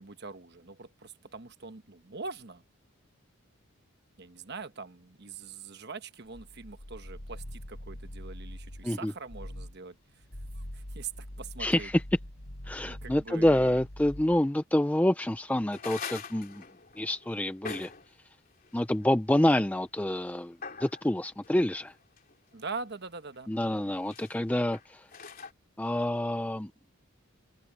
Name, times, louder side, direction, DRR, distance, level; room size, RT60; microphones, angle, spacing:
voice 1, 0.0-2.6 4.2-10.2 10.5-11.9 12.8-13.8 22.5-23.9, right 4 dB, 50° right, 1.2 m, -43 dB
sound 1, 6.3-8.9 9.3-9.8 10.2-14.5, equal, 75° left, 4.8 m, -43 dB
voice 2, 11.6-12.0 12.6-16.6 17.0-17.9 18.7-21.9 23.5-25.1 25.8-26.7, left 1 dB, 5° left, 0.4 m, -27 dB
sound 2, 15.7-18.1 18.6-18.7 19.3-19.6 19.9-20.1 20.6-21.1 21.4-22.8 23.3-23.4 23.7-25.5, left 5 dB, 40° left, 3.7 m, -43 dB
open air
head